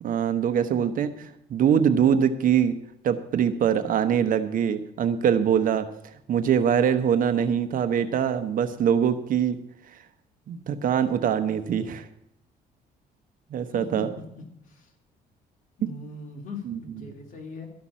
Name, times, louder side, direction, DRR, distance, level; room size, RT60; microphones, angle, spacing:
voice 1, 0.0-2.7 3.0-5.9 6.3-9.6 10.5-12.1 13.5-14.1 16.7-17.1, right 8 dB, 55° right, 10 dB, 1.0 m, -23 dB
voice 2, 13.7-14.9 15.8-17.7, left 3 dB, 50° left, 1 dB, 3.0 m, -41 dB
13.0 x 5.9 x 8.5 m, 0.77 s
cardioid pair, 110°, 17 cm